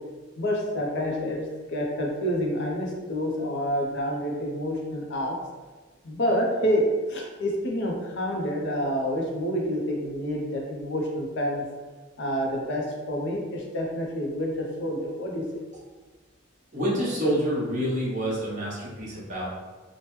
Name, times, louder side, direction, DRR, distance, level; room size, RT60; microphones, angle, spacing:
voice 1, 0.4-1.4 1.7-5.3 6.0-6.8 7.1-11.6 12.2-15.4, equal, 60° left, 0 dB, 0.5 m, -28 dB
voice 2, 16.7-19.5, equal, 40° right, -7 dB, 0.9 m, -27 dB
3.0 x 2.1 x 3.1 m, 1.3 s
head